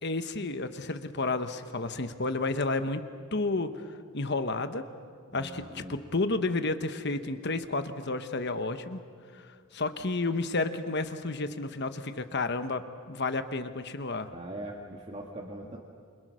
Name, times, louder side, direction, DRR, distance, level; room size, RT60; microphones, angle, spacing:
voice 1, 0.0-3.0 3.3-4.8 5.3-9.0 9.3-9.4 9.7-12.8 13.1-14.3, left 3 dB, 50° left, 9 dB, 1.2 m, -31 dB
voice 2, 5.3-6.0 14.3-15.8, right 1 dB, 30° right, -1 dB, 1.7 m, -41 dB
28.0 x 26.5 x 6.4 m, 2.1 s
head